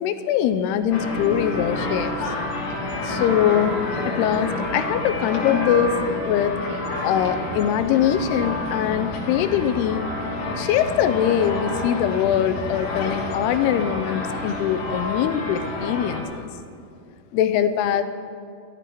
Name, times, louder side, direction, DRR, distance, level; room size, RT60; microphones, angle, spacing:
voice 1, 0.0-2.3 3.0-6.0 6.3-6.6 7.0-10.1 10.5-16.5 17.3-18.0, left 9 dB, 85° left, 10 dB, 2.7 m, -22 dB
sound 1, 0.9-16.2, left 2 dB, 65° left, 3.3 m, -29 dB
14.0 x 14.0 x 4.6 m, 2.4 s
omnidirectional pair, 4.6 m